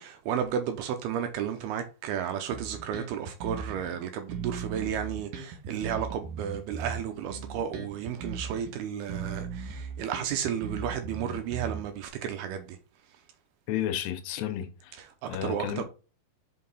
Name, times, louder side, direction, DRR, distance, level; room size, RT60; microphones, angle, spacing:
voice 1, 0.0-12.8 15.2-15.8, right 8 dB, 80° right, 2.5 m, -33 dB
Bass guitar, 2.5-4.0 4.3-8.8 9.1-12.1, right 5 dB, 65° right, 2.6 m, -38 dB
voice 2, 13.7-15.0 15.3-15.8, left 11 dB, 80° left, 2.8 m, -32 dB
5.7 x 5.5 x 4.1 m
omnidirectional pair, 4.9 m